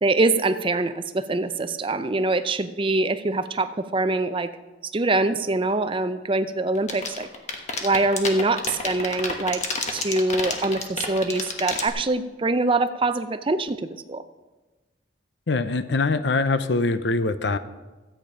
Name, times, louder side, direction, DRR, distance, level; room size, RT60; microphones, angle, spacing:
voice 1, 0.0-4.5 4.9-7.3 7.8-9.6 9.9-14.2, right 2 dB, 30° right, 11 dB, 0.5 m, -24 dB
sound 1, 6.8-11.9, left 4 dB, 40° left, 1.3 m, -28 dB
voice 2, 15.5-17.6, left 3 dB, 65° left, 12 dB, 0.6 m, -23 dB
13.5 x 8.7 x 5.0 m, 1.2 s
head